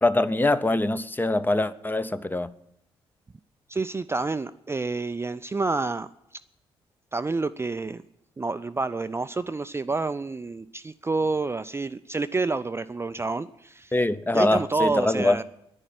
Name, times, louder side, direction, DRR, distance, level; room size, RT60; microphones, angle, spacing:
voice 1, 0.0-2.5 13.9-15.4, left 2 dB, 15° left, 0.7 m, -23 dB
voice 2, 3.7-6.1 7.1-8.0 8.4-13.9 14.3-15.4, right 3 dB, 20° right, 0.5 m, -28 dB
11.0 x 9.8 x 10.0 m
figure-of-eight pair, 40°, 13 cm